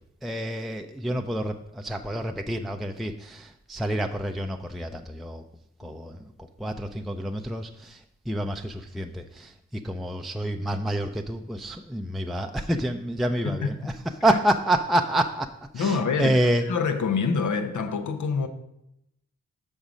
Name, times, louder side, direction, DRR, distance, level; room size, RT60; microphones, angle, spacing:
voice 1, 0.2-5.4 5.8-13.8 14.2-15.5 15.7-16.6, right 1 dB, ahead, 0.5 m, -28 dB
voice 2, 13.4-13.9 14.3-14.4 15.7-16.4 16.7-18.5, left 5 dB, 75° left, 0.8 m, -26 dB
6.0 x 5.5 x 5.0 m
cardioid pair, 50°, 30 cm